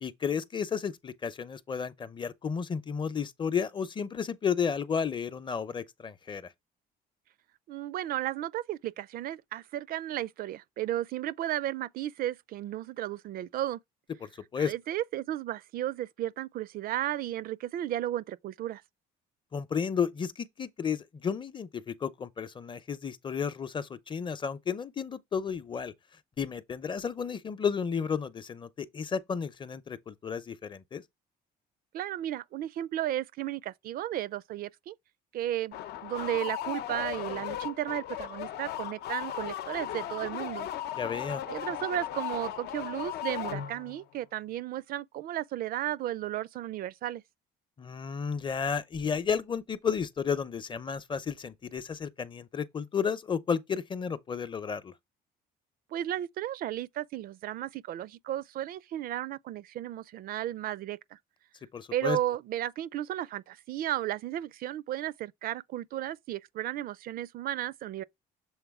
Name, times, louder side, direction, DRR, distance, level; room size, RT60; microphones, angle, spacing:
voice 1, 0.0-6.5 14.2-14.7 19.5-25.9 26.4-31.0 41.0-41.4 47.8-54.9 61.7-62.2, left 6 dB, 30° left, 0.7 m, -32 dB
voice 2, 7.7-13.8 14.6-18.8 31.9-34.9 35.3-40.7 41.5-47.2 55.9-61.2 61.9-68.0, right 13 dB, 60° right, 0.4 m, -34 dB
sound 1, 35.7-44.0, left 11 dB, 75° left, 0.7 m, -37 dB
7.1 x 3.7 x 3.6 m
cardioid pair, 110°, 17 cm